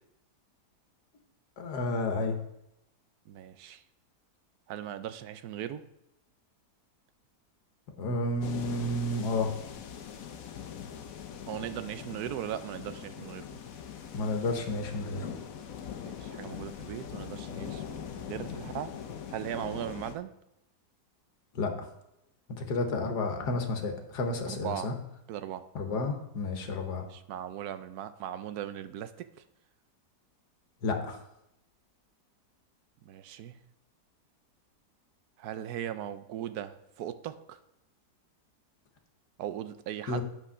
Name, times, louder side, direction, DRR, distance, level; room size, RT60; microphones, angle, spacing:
voice 1, 1.6-2.4 8.0-9.5 14.1-15.3 21.5-21.7 22.6-24.9 25.7-27.0 30.8-31.2 40.1-40.2, left 2 dB, 80° left, 5 dB, 1.7 m, -31 dB
voice 2, 3.3-3.8 4.7-5.8 11.5-13.5 16.0-18.9 19.3-20.3 24.5-24.9 25.3-25.6 27.1-29.3 33.1-33.6 35.4-37.6 39.4-40.2, right 11 dB, 75° right, 12 dB, 1.1 m, -38 dB
sound 1, 8.4-20.2, left 8 dB, 65° left, 1.2 m, -42 dB
9.0 x 6.1 x 5.6 m, 0.83 s
omnidirectional pair, 1.7 m